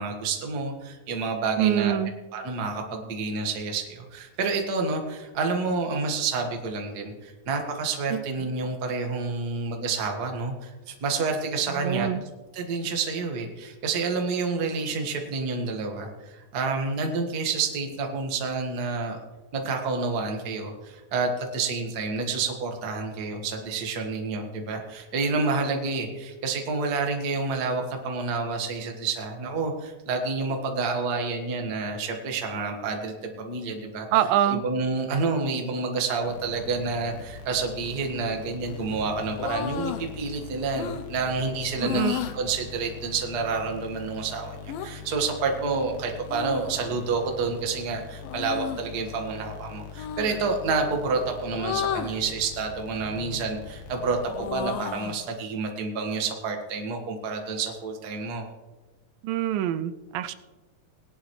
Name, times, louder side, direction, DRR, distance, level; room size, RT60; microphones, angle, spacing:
voice 1, 0.0-1.9 2.3-12.1 12.5-19.2 19.5-34.1 34.5-58.5, right 4 dB, 45° right, 2 dB, 1.3 m, -29 dB
voice 2, 1.6-2.1 8.1-8.2 11.7-12.2 34.1-34.6 41.8-42.2 59.2-60.3, right 11 dB, 85° right, 12 dB, 2.2 m, -25 dB
sound 1, 36.2-55.0, left 7 dB, 70° left, 2.9 m, -42 dB
sound 2, 39.3-40.1 40.8-41.1 41.8-42.4 44.7-44.9 46.3-46.9 48.2-48.9 50.0-50.4 51.6-52.2 53.1-53.5 53.9-55.2, left 9 dB, 90° left, 2.6 m, -33 dB
19.5 x 11.0 x 3.2 m, 1.2 s
omnidirectional pair, 4.0 m